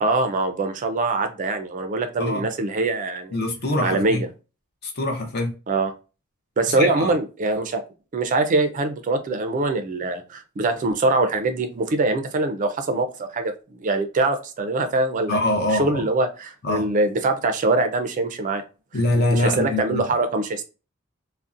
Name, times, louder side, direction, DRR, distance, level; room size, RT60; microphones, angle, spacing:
voice 1, 0.0-3.4 3.8-4.3 5.7-5.9 6.6-7.8 8.1-15.4 15.7-18.6 19.3-20.6, right 2 dB, 40° right, 0.4 m, -23 dB
voice 2, 3.3-4.2 4.8-5.5 6.7-7.1 15.3-16.0 16.6-16.9 18.9-20.0, left 1 dB, 50° left, 0.6 m, -24 dB
2.6 x 2.0 x 2.4 m
head